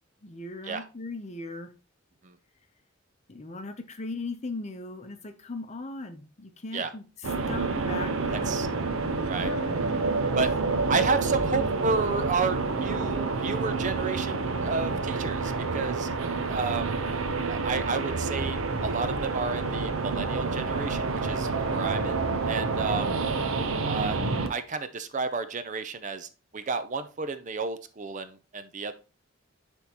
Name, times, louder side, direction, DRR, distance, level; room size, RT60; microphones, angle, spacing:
voice 1, 0.2-1.7 3.3-8.6 9.3-9.7 10.4-10.5 10.9-11.0 22.7-23.0, left 3 dB, 35° left, 8 dB, 0.7 m, -38 dB
sound 1, 7.2-24.5, right 3 dB, 85° right, 0.8 m, -28 dB
voice 2, 8.3-8.7 9.3-9.5 10.4-10.5 10.9-16.1 16.5-17.0 17.5-23.1 23.9-24.2 24.5-28.9, right 4 dB, 35° right, 10 dB, 0.5 m, -31 dB
10.5 x 3.6 x 3.0 m, 0.32 s
head